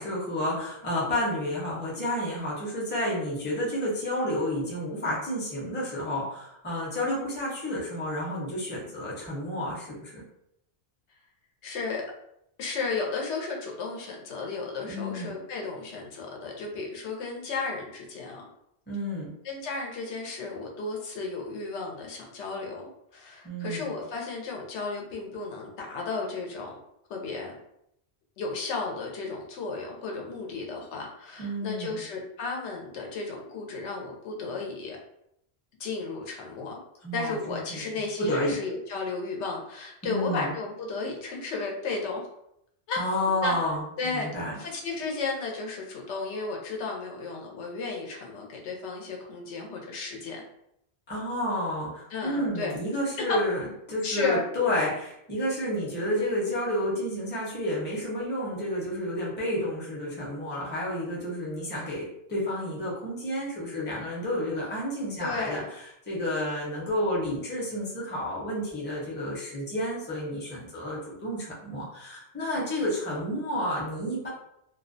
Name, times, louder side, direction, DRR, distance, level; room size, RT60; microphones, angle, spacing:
voice 1, 0.0-10.2 14.9-15.3 18.9-19.3 23.4-23.9 31.4-32.0 37.0-37.8 38.2-38.5 40.0-40.5 43.0-44.5 51.1-53.6 53.9-74.3, left 1 dB, 15° left, -5 dB, 0.5 m, -30 dB
voice 2, 11.6-12.0 12.6-18.5 19.4-26.8 27.1-27.5 28.4-35.0 35.8-36.8 37.1-42.3 42.9-43.0 43.4-43.5 44.0-44.3 44.5-50.4 52.1-52.8 53.3-53.4 54.0-54.4 65.2-65.7, left 4 dB, 90° left, 0 dB, 0.9 m, -34 dB
2.3 x 2.1 x 2.5 m, 0.77 s
omnidirectional pair, 1.1 m